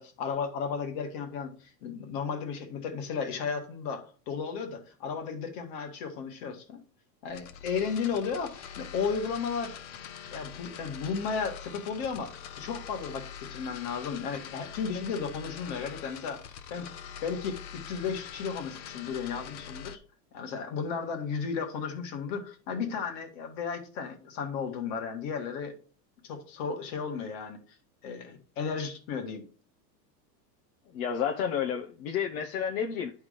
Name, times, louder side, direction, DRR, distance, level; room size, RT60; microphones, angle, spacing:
voice 1, 0.0-6.8 7.2-9.8 10.3-16.4 16.7-16.9 17.2-17.6 17.9-20.0 20.3-25.7 26.2-27.6 28.0-29.4, left 6 dB, 40° left, 1.5 m, -34 dB
sound 1, 7.3-20.0, left 8 dB, 85° left, 1.0 m, -44 dB
voice 2, 30.9-33.1, left 8 dB, 55° left, 0.9 m, -30 dB
11.0 x 3.6 x 5.0 m
supercardioid pair, 175°, 50 cm